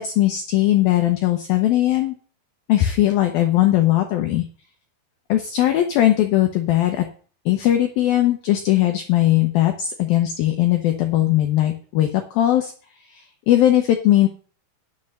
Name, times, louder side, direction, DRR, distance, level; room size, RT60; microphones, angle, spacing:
voice 1, 0.0-2.1 2.7-4.5 5.3-7.1 7.5-12.7 13.1-14.3, left 13 dB, 90° left, 5 dB, 2.0 m, -19 dB
9.8 x 6.9 x 6.4 m, 0.42 s
omnidirectional pair, 5.5 m